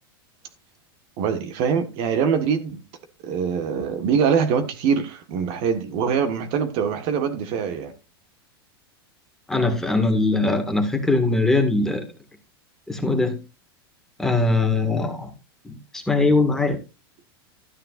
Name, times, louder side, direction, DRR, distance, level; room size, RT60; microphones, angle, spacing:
voice 1, 1.2-2.8 3.2-7.9, right 6 dB, 50° right, 1.5 m, -23 dB
voice 2, 9.5-12.0 12.9-13.4 14.2-15.3 15.6-16.8, left 3 dB, 5° left, 1.8 m, -21 dB
13.0 x 9.0 x 2.5 m
supercardioid pair, 130°, 13 cm